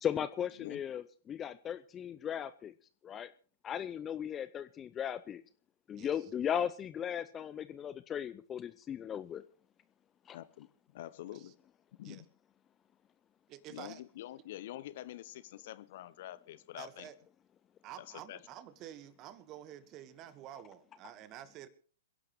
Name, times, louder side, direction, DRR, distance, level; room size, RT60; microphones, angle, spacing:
voice 1, 0.0-2.7 3.0-3.3 3.6-5.4 5.9-9.4 10.3-10.4, left 9 dB, 20° left, 14 dB, 0.6 m, -37 dB
voice 2, 6.0-6.3 11.3-11.5 12.0-12.2 13.5-14.0 16.8-17.2 17.8-21.7, right 12 dB, 35° right, 14 dB, 1.5 m, -49 dB
voice 3, 10.3-10.7 10.9-11.5 12.0-12.3 13.7-17.1 18.0-18.4, left 14 dB, 50° left, 16 dB, 0.8 m, -46 dB
28.0 x 11.0 x 3.2 m, 0.41 s
figure-of-eight pair, 110°, 0 cm